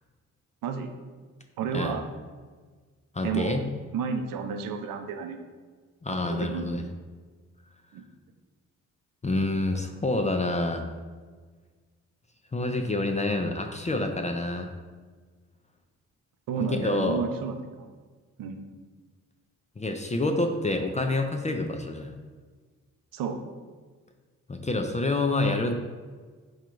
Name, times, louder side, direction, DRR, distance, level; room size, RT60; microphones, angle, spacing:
voice 1, 1.6-2.1 3.2-3.6 3.9-5.4 6.3-6.6 7.9-8.0 16.5-17.9 18.4-18.7 23.1-23.4, right 6 dB, 75° right, 6 dB, 0.6 m, -31 dB
voice 2, 3.1-3.7 6.0-6.8 9.2-10.9 12.5-14.7 16.7-17.2 19.8-22.1 24.5-25.7, left 2 dB, 20° left, 4 dB, 0.5 m, -27 dB
4.8 x 2.3 x 4.5 m, 1.5 s
supercardioid pair, 45°, 34 cm